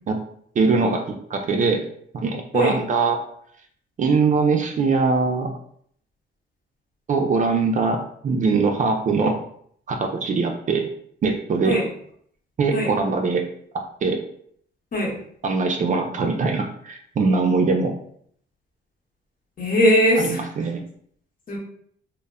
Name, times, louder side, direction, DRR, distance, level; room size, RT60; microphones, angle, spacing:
voice 1, 0.6-1.0 1.3-1.9 2.1-3.2 4.0-5.5 7.1-9.4 9.9-10.9 11.2-11.8 12.6-13.5 14.0-14.2 15.4-17.9 20.2-20.8, right 4 dB, 40° right, 3 dB, 0.4 m, -22 dB
voice 2, 19.6-20.5 21.5-21.6, equal, 45° left, -3 dB, 1.0 m, -20 dB
2.1 x 2.0 x 3.5 m, 0.64 s
cardioid pair, 90°, 20 cm